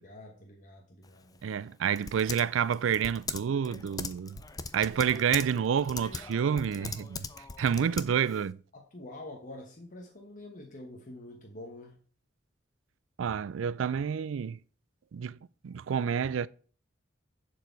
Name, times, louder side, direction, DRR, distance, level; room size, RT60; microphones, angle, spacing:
voice 1, 0.0-1.6 7.8-8.0 8.7-12.0, left 1 dB, 40° left, 1.2 m, -47 dB
Typing, 1.0-8.5, left 4 dB, 20° left, 0.5 m, -41 dB
voice 2, 1.4-4.4 4.7-7.2 7.6-8.6 13.2-14.6 15.1-15.4 15.6-16.5, right 7 dB, 80° right, 0.4 m, -29 dB
11.0 x 4.7 x 4.6 m
head